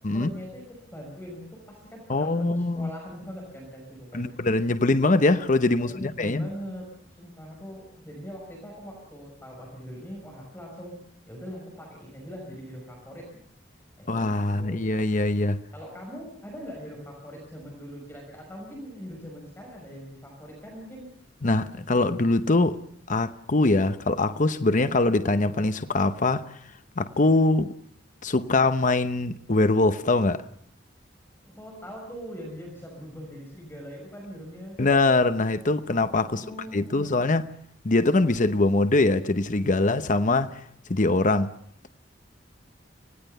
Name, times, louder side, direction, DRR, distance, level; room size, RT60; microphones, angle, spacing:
voice 1, 0.1-4.3 5.8-6.9 7.2-11.0 11.3-13.3 14.0-14.8 15.7-21.1 31.4-34.8 36.2-37.1, equal, 10° left, 5.7 m, -41 dB
voice 2, 2.1-2.9 4.1-6.5 14.1-15.6 21.4-22.8 23.1-26.6 27.0-27.7 28.2-30.4 34.8-36.4 36.7-37.5 37.8-40.6 40.9-41.5, left 2 dB, 45° left, 0.9 m, -23 dB
25.0 x 18.5 x 6.7 m
head